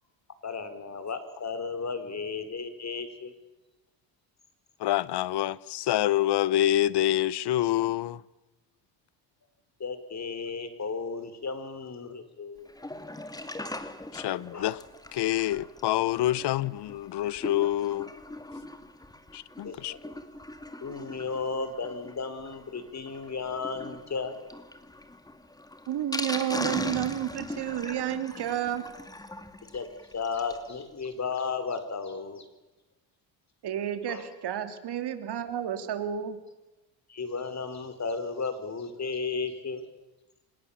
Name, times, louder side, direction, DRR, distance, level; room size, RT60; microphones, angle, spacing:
voice 1, 0.4-3.3 9.8-12.7 14.5-14.8 19.6-20.0 20.8-24.4 29.7-29.9 30.1-32.5 34.1-34.3 37.1-39.8, left 4 dB, 40° left, 4.6 m, -34 dB
voice 2, 4.8-8.2 14.1-14.8 15.1-18.1 19.3-19.9, left 13 dB, 65° left, 1.0 m, -27 dB
Sink (filling or washing), 12.7-30.7 31.0-31.1 31.3-31.4 31.8-31.9, left 1 dB, 10° left, 2.4 m, -41 dB
voice 3, 25.9-28.9 33.6-36.4, right 10 dB, 65° right, 3.3 m, -31 dB
26.5 x 21.5 x 7.3 m
cardioid pair, 90°, 43 cm